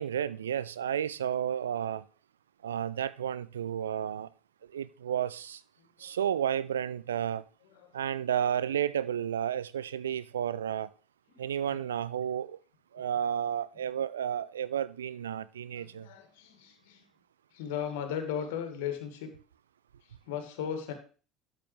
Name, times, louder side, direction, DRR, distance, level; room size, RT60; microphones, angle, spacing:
voice 1, 0.0-2.0 2.6-4.3 4.7-5.6 6.0-7.4 7.9-10.9 11.4-12.6 12.9-16.1, right 9 dB, 75° right, 0.4 m, -32 dB
voice 2, 15.8-17.1 17.5-19.3 20.0-20.9, left 8 dB, 65° left, 2.0 m, -37 dB
13.0 x 7.5 x 3.4 m
figure-of-eight pair, 65°, 0 cm